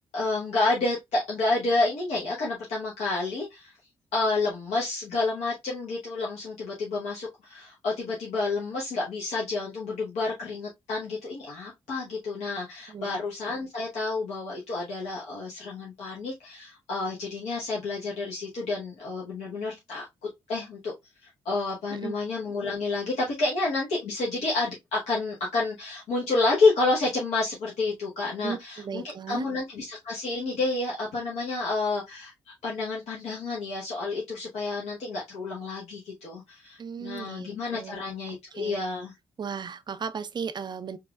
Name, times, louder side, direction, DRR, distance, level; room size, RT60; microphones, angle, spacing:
voice 1, 0.1-3.8 4.1-20.1 20.5-20.9 21.2-32.3 32.6-39.1, left 3 dB, 70° left, 0.9 m, -29 dB
voice 2, 12.9-13.2 21.9-22.1 28.4-29.5 36.8-38.0 38.5-38.8 39.4-41.0, right 6 dB, 40° right, 0.5 m, -36 dB
4.5 x 2.4 x 2.2 m
hypercardioid pair, 40°, 12 cm